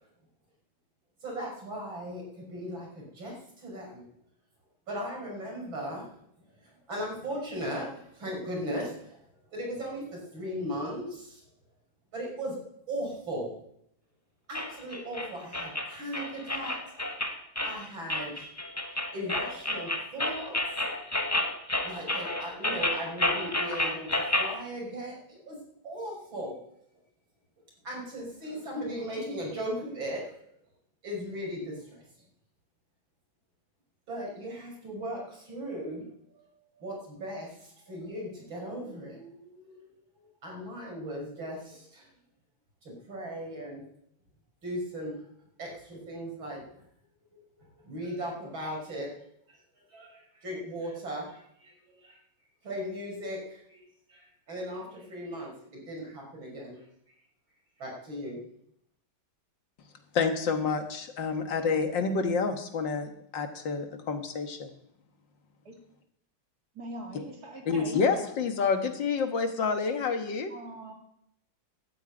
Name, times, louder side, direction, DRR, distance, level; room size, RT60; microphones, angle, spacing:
voice 1, 1.2-4.0 4.9-6.1 6.6-9.2 9.5-11.4 12.1-12.6 12.9-13.5 14.5-16.8 17.6-18.5 19.1-20.6 21.8-25.6 25.8-26.6 27.8-30.3 31.0-32.0 34.1-36.0 36.7-39.7 40.4-42.1 42.8-43.8 44.6-45.2 45.6-46.8 47.3-47.4 47.7-49.1 49.5-49.6 49.9-52.2 52.6-56.8 57.8-58.4, equal, 75° right, -2 dB, 6.3 m, -37 dB
sound 1, 14.5-24.5, left 1 dB, 10° left, 1.0 m, -31 dB
voice 2, 60.1-64.7 67.7-70.5, left 5 dB, 65° left, 6 dB, 2.1 m, -28 dB
voice 3, 66.7-68.0 70.5-70.9, right 1 dB, 50° right, 0 dB, 3.1 m, -42 dB
12.5 x 8.9 x 8.9 m, 0.73 s
omnidirectional pair, 2.2 m